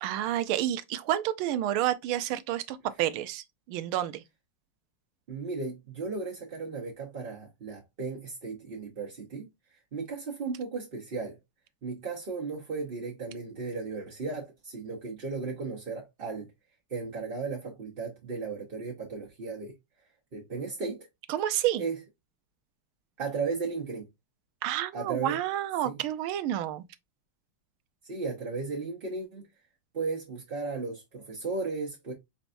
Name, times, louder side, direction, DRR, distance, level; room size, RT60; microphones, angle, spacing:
voice 1, 0.0-4.2 21.3-21.8 24.6-26.9, right 12 dB, 90° right, 1.4 m, -29 dB
voice 2, 5.3-9.5 9.9-11.4 11.8-16.5 16.9-19.7 20.3-21.1 21.8-21.9 23.2-24.1 24.9-25.4 25.8-26.0 28.1-29.5 29.9-32.1, right 4 dB, 40° right, 0.8 m, -35 dB
4.5 x 4.1 x 2.6 m
omnidirectional pair, 2.2 m